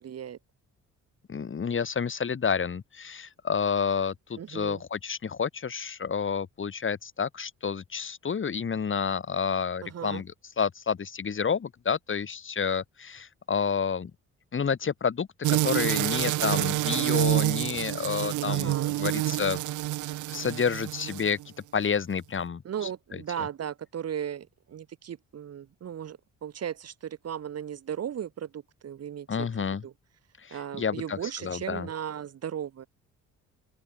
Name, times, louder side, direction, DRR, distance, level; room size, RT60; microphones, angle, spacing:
voice 1, 0.0-0.4 4.4-4.8 9.8-10.2 16.2-16.6 18.5-18.9 22.6-29.5 29.8-29.9 30.5-32.9, right 9 dB, 55° right, 1.9 m, -36 dB
voice 2, 1.3-14.1 14.5-19.6 20.3-22.6 23.1-23.2 29.3-29.8 30.4-31.2 31.4-31.9, left 6 dB, 40° left, 4.9 m, -29 dB
sound 1, 15.4-21.4, right 16 dB, 80° right, 0.7 m, -28 dB
open air
cardioid pair, 90°, 30 cm